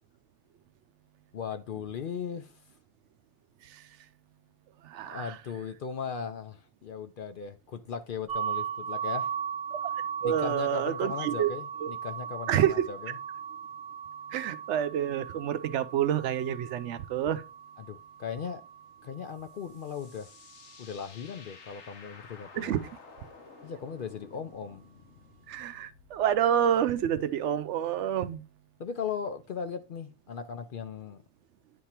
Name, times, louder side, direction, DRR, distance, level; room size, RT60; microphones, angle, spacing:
voice 1, 1.3-2.5 5.0-9.3 10.2-13.1 17.8-18.6 19.0-20.3 20.8-22.8 23.6-24.8 28.8-31.2, left 7 dB, 60° left, 0.7 m, -38 dB
voice 2, 4.8-5.4 9.7-9.8 10.2-11.5 11.8-11.9 12.5-12.9 14.3-17.4 22.5-22.8 25.5-28.4, right 10 dB, 85° right, 0.9 m, -28 dB
sound 1, 8.3-20.0, right 8 dB, 20° right, 1.2 m, -38 dB
sound 2, 19.3-26.5, left 5 dB, 85° left, 1.2 m, -53 dB
9.3 x 3.5 x 4.3 m
omnidirectional pair, 1.2 m